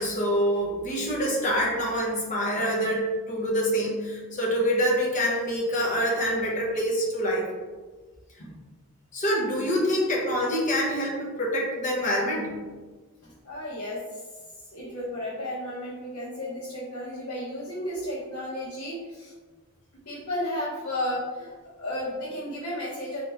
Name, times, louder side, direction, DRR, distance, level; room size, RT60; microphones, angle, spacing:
voice 1, 0.0-7.5 9.1-12.6, equal, 35° left, -3 dB, 1.0 m, -26 dB
voice 2, 13.2-14.2 14.7-19.3 20.0-23.2, left 1 dB, 85° left, -11 dB, 1.2 m, -33 dB
4.2 x 3.1 x 3.4 m, 1.4 s
head